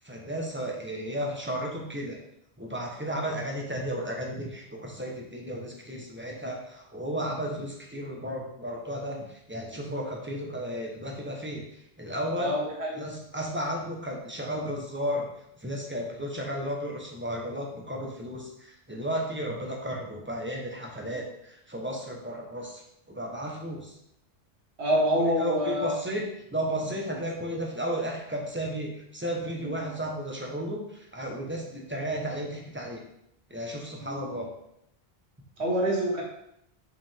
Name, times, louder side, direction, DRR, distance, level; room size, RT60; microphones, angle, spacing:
voice 1, 0.0-2.2 2.6-12.6 12.9-15.3 15.6-22.8 23.1-24.0 25.2-33.0 33.5-34.5, equal, 10° right, -1 dB, 1.1 m, -34 dB
voice 2, 12.4-13.0 24.8-25.9 35.6-36.2, equal, 80° right, -3 dB, 2.0 m, -26 dB
5.8 x 5.2 x 3.5 m, 0.77 s
omnidirectional pair, 1.1 m